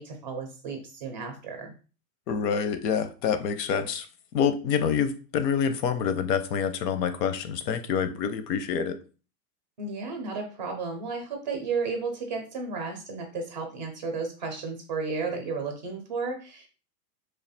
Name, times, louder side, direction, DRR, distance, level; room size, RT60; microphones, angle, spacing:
voice 1, 0.0-1.7 9.8-16.7, right 4 dB, 30° right, 3 dB, 0.4 m, -33 dB
voice 2, 2.3-4.1 4.3-9.0, left 7 dB, 90° left, 11 dB, 0.8 m, -27 dB
3.2 x 2.4 x 4.0 m, 0.36 s
supercardioid pair, 170°, 49 cm